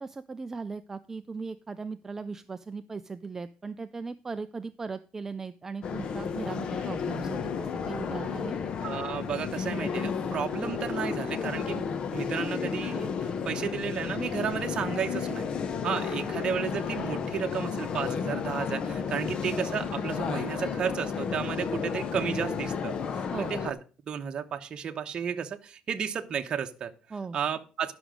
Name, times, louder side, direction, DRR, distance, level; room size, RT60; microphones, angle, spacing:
voice 1, 0.0-8.6 23.3-23.5 27.1-27.4, right 4 dB, 20° right, 12 dB, 0.4 m, -38 dB
sound 1, 5.8-23.7, left 6 dB, 45° left, 0.9 m, -32 dB
voice 2, 8.8-11.8 12.1-15.5 15.8-23.8 24.1-26.9 27.3-27.9, right 7 dB, 40° right, 6 dB, 1.0 m, -33 dB
11.0 x 6.1 x 5.0 m, 0.35 s
cardioid pair, 130°, 2 cm